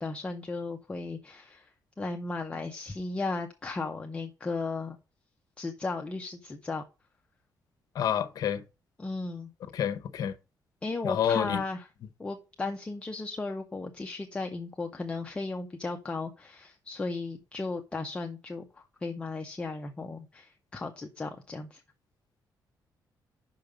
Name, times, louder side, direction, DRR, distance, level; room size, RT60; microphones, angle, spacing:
voice 1, 0.0-1.7 2.0-5.0 5.6-6.8 9.0-9.5 10.8-11.9 12.2-21.8, left 3 dB, 15° left, 0.6 m, -35 dB
voice 2, 7.9-8.6 9.7-10.3 11.0-11.6, left 9 dB, 60° left, 0.8 m, -28 dB
5.8 x 5.1 x 6.4 m
cardioid pair, 165°, 7 cm